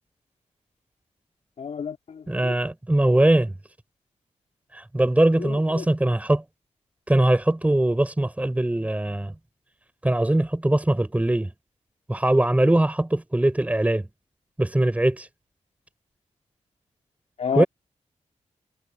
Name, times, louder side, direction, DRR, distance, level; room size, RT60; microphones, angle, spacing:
voice 1, 1.6-2.5 5.4-5.9 17.4-17.6, left 7 dB, 60° left, 4.0 m, -30 dB
voice 2, 2.3-3.5 4.7-6.4 7.1-9.3 10.0-11.5 12.1-14.1 14.6-15.3 17.6-17.7, right 1 dB, 10° right, 4.4 m, -21 dB
wide cardioid pair, 155°, 13 cm